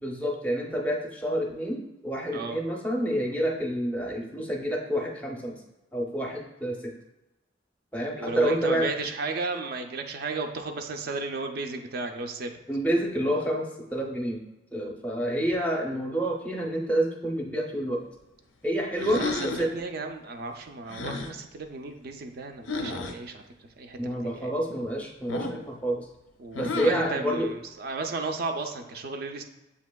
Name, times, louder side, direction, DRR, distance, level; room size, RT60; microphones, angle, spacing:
voice 1, 0.0-5.5 5.9-6.8 7.9-8.9 12.7-14.4 14.7-18.0 18.6-19.7 24.0-26.1 26.5-27.5, equal, 10° left, 0 dB, 0.5 m, -28 dB
voice 2, 8.2-12.5 19.2-23.4 23.8-24.5 26.4-29.4, right 3 dB, 55° right, 5 dB, 0.4 m, -34 dB
sound 1, 19.0-19.7 20.9-21.3 22.7-23.1 25.3-25.7 26.5-27.1, left 3 dB, 85° left, 0.5 m, -32 dB
7.2 x 2.8 x 2.2 m, 1.0 s
head